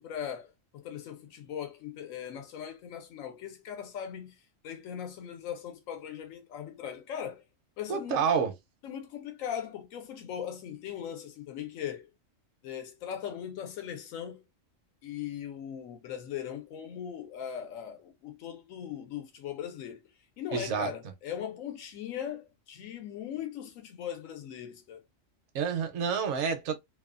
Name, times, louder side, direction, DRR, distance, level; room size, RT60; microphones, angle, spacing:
voice 1, 0.0-7.4 7.8-8.2 8.8-12.1 12.6-14.4 15.0-20.1 20.4-25.0, left 9 dB, 90° left, 1.0 m, -39 dB
voice 2, 7.9-8.5 20.5-20.9 25.5-26.8, right 6 dB, 70° right, 0.9 m, -28 dB
2.7 x 2.2 x 2.4 m
omnidirectional pair, 1.3 m